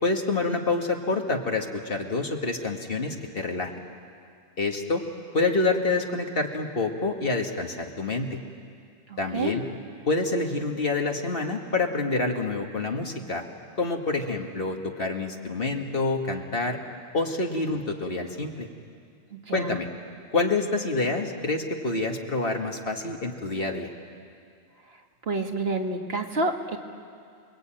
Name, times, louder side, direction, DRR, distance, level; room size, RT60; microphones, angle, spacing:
voice 1, 0.0-3.7 4.6-5.0 5.3-8.4 9.2-9.6 10.1-13.4 13.8-16.8 17.1-18.7 19.5-19.9 20.3-23.9, left 3 dB, 55° left, 2 dB, 2.3 m, -27 dB
voice 2, 9.1-9.6 19.3-19.8 25.3-26.8, right 2 dB, 60° right, 2 dB, 2.1 m, -29 dB
29.0 x 21.0 x 9.1 m, 2.3 s
omnidirectional pair, 1.2 m